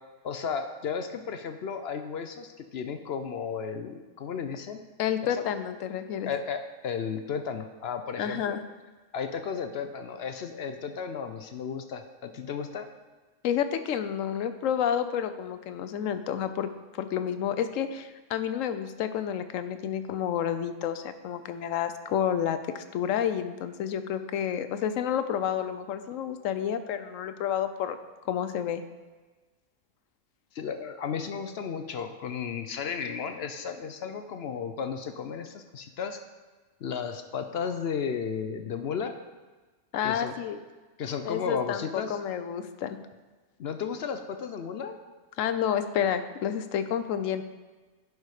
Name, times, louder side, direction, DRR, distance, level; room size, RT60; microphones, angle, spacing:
voice 1, 0.2-4.8 5.3-5.4 6.3-8.6 9.1-12.9 30.5-36.2 36.8-39.1 40.0-40.3 41.0-42.2 43.6-45.0, left 6 dB, 60° left, 7 dB, 0.8 m, -34 dB
voice 2, 5.0-6.3 8.2-8.6 13.4-28.0 28.3-28.8 39.9-40.6 41.2-43.0 45.4-47.4, left 9 dB, 85° left, 10 dB, 1.0 m, -30 dB
11.0 x 4.9 x 4.8 m, 1.3 s
omnidirectional pair, 1.3 m